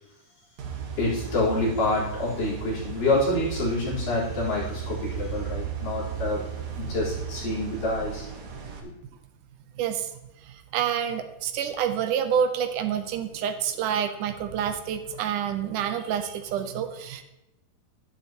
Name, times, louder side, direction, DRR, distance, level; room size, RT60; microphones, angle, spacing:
sound 1, 0.6-8.8, right 8 dB, 60° right, 2.4 m, -35 dB
voice 1, 1.0-6.4 6.8-8.3 8.8-8.9, left 2 dB, 80° left, -8 dB, 5.8 m, -27 dB
voice 2, 9.8-10.1 10.5-17.2, right 8 dB, 80° right, 8 dB, 2.2 m, -28 dB
12.0 x 11.0 x 3.0 m, 0.92 s
omnidirectional pair, 3.8 m